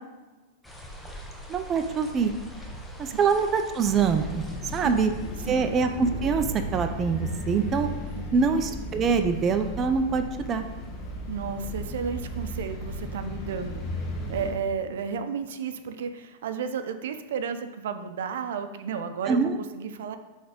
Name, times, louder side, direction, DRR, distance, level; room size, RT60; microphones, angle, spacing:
sound 1, 0.6-6.1, equal, 5° left, 0.8 m, -44 dB
voice 1, 1.5-2.3 3.0-4.4 4.7-5.1 5.5-7.9 8.3-10.7 19.3-19.6, right 5 dB, 25° right, 7 dB, 0.4 m, -24 dB
sound 2, 3.8-14.5, equal, 30° left, 1.3 m, -35 dB
voice 2, 4.8-5.2 5.4-5.6 8.2-8.5 11.3-13.9 14.3-20.2, right 6 dB, 80° right, 9 dB, 0.5 m, -33 dB
6.4 x 3.4 x 5.1 m, 1.2 s
supercardioid pair, 140°, 0 cm